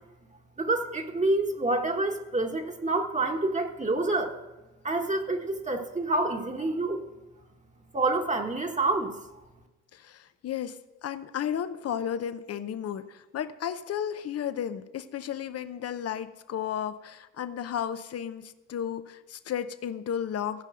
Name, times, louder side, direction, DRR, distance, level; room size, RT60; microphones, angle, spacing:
voice 1, 0.6-4.3 4.8-7.0 7.9-9.2, right 2 dB, 25° right, 3 dB, 1.4 m, -27 dB
voice 2, 9.9-20.6, left 9 dB, 55° left, 11 dB, 0.8 m, -33 dB
15.5 x 5.4 x 7.7 m, 1.1 s
cardioid pair, 90°, 30 cm